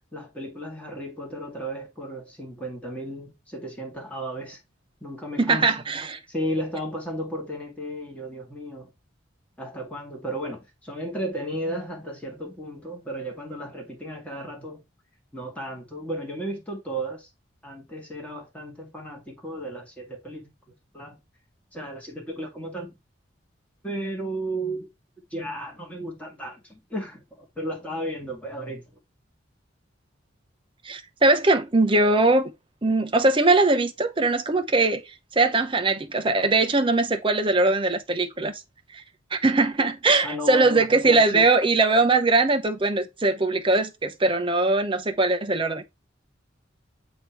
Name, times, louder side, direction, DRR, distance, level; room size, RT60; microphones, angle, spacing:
voice 1, 0.1-4.6 5.0-5.8 6.3-8.9 9.6-14.8 15.3-17.3 17.6-20.5 20.9-21.2 21.7-22.9 23.8-24.9 25.3-28.8 40.2-41.5, equal, 5° left, 2.4 m, -34 dB
voice 2, 5.4-6.2 30.8-32.5 32.8-35.0 35.3-38.6 38.9-39.0 39.3-45.8, right 2 dB, 25° right, 0.9 m, -21 dB
7.7 x 3.1 x 4.7 m
head